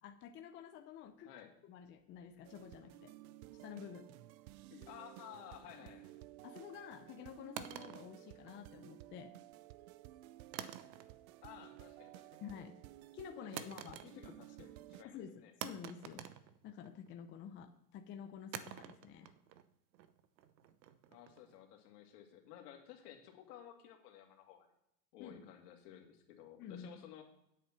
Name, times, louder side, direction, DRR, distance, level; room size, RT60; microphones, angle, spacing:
voice 1, 0.0-1.3 1.6-3.1 3.6-4.1 6.4-9.3 12.4-12.8 13.1-14.7 15.0-15.3 15.6-16.3 16.6-19.3 25.2-25.4 26.6-26.9, left 8 dB, 25° left, 5 dB, 0.6 m, -50 dB
voice 2, 1.2-1.5 4.7-6.2 11.4-12.4 13.4-15.5 21.1-24.7 25.1-27.2, left 10 dB, 70° left, 3 dB, 2.4 m, -55 dB
sound 1, 2.4-15.0, right 16 dB, 60° right, 0.5 m, -55 dB
sound 2, 7.6-9.0 10.5-11.4 11.7-12.1 13.6-14.5 14.8-14.9 15.6-17.1 18.5-21.5, right 10 dB, 90° right, 1.0 m, -49 dB
8.6 x 8.3 x 5.9 m, 0.80 s
supercardioid pair, 140°, 49 cm